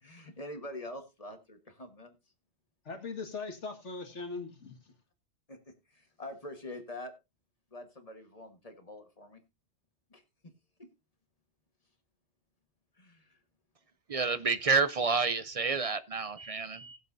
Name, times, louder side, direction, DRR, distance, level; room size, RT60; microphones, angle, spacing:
voice 1, 0.0-2.1 5.5-5.6 5.9-7.1 7.7-9.4 10.1-10.2 12.9-13.4, left 1 dB, 30° left, 1.5 m, -45 dB
voice 2, 2.9-4.9, left 4 dB, 75° left, 2.1 m, -40 dB
voice 3, 14.1-17.0, right 4 dB, 45° right, 0.5 m, -29 dB
19.0 x 7.3 x 2.6 m
omnidirectional pair, 1.2 m